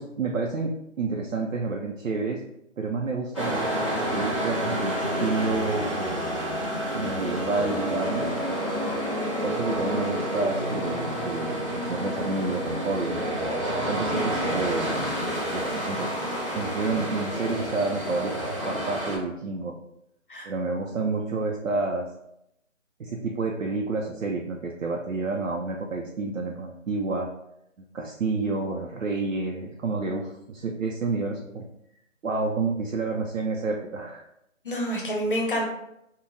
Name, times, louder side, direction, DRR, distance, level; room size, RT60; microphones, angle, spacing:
voice 1, 0.0-2.4 2.8-3.6 3.9-6.3 6.9-8.4 9.4-13.3 13.9-15.1 15.5-16.1 16.5-19.7 20.5-22.1 23.0-27.3 27.9-31.7 32.2-34.2, right 3 dB, 75° right, 0 dB, 0.5 m, -29 dB
sound 1, 3.3-19.2, equal, 25° right, 0.6 m, -29 dB
voice 2, 34.6-35.7, equal, 45° left, -1 dB, 0.7 m, -28 dB
3.7 x 2.1 x 2.5 m, 0.80 s
figure-of-eight pair, 160°, 39 cm